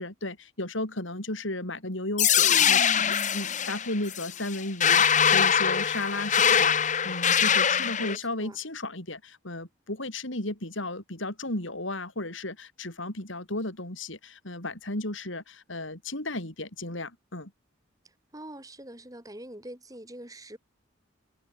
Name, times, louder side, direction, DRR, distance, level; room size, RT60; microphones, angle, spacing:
voice 1, 0.0-6.7 7.0-17.5, left 2 dB, 75° left, 5.4 m, -34 dB
sound 1, 2.2-8.2, left 8 dB, 35° left, 1.5 m, -23 dB
voice 2, 8.0-8.6 18.3-20.6, right 1 dB, 15° right, 4.8 m, -44 dB
head